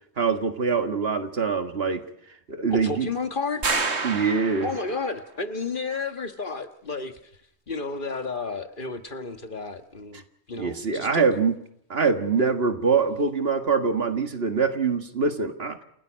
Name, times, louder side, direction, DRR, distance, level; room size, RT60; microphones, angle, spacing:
voice 1, 0.2-2.0 2.5-3.1 4.0-4.7 10.1-10.2 10.6-11.6 11.9-15.8, right 5 dB, 65° right, 8 dB, 1.9 m, -24 dB
voice 2, 2.7-4.1 4.6-7.3 7.7-11.2, left 4 dB, 50° left, 8 dB, 1.7 m, -32 dB
sound 1, 3.6-5.1, right 4 dB, 90° right, 2.2 m, -28 dB
28.5 x 16.5 x 6.4 m, 0.74 s
omnidirectional pair, 1.1 m